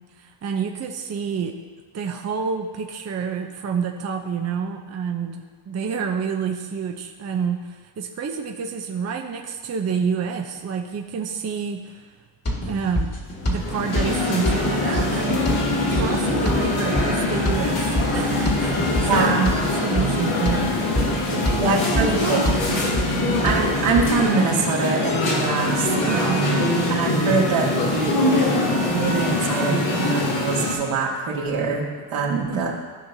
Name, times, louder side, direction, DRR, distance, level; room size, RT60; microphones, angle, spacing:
voice 1, 0.2-1.5 1.9-12.0 12.6-13.1 13.5-15.5 15.9-19.3 19.7-20.7 21.3-22.4 26.0-26.6 32.3-32.7, right 6 dB, 30° right, 2 dB, 0.7 m, -28 dB
sound 1, 12.5-24.1, equal, 30° left, 1.9 m, -28 dB
sound 2, 13.4-30.7, left 2 dB, 75° left, 2.4 m, -23 dB
voice 2, 19.1-19.5 21.6-22.4 23.4-26.6 26.9-28.6 28.9-32.7, right 4 dB, 75° right, -3 dB, 2.2 m, -24 dB
15.0 x 5.6 x 2.7 m, 1.5 s
cardioid pair, 90°, 50 cm